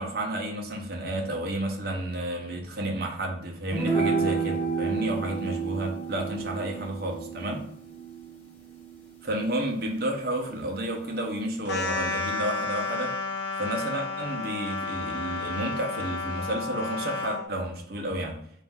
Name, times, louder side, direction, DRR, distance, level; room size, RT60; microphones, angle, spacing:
voice 1, 0.0-7.7 9.2-13.2 13.6-18.4, right 1 dB, 60° right, 0.9 m, -31 dB
sound 1, 3.7-10.3, right 5 dB, 10° left, 1.0 m, -31 dB
sound 2, 11.6-17.4, left 3 dB, 75° left, 0.8 m, -32 dB
4.1 x 2.6 x 3.6 m
head